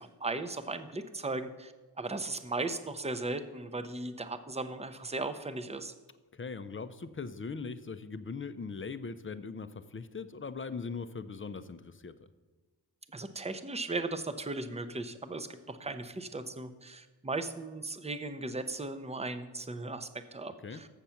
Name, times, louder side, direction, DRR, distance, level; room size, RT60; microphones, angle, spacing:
voice 1, 0.0-1.7 2.0-5.9 13.1-20.9, right 2 dB, 15° right, 9 dB, 0.6 m, -37 dB
voice 2, 6.3-12.1 20.6-20.8, left 4 dB, 30° left, 12 dB, 0.5 m, -40 dB
7.4 x 6.7 x 5.7 m, 1.3 s
wide cardioid pair, 80°, 42 cm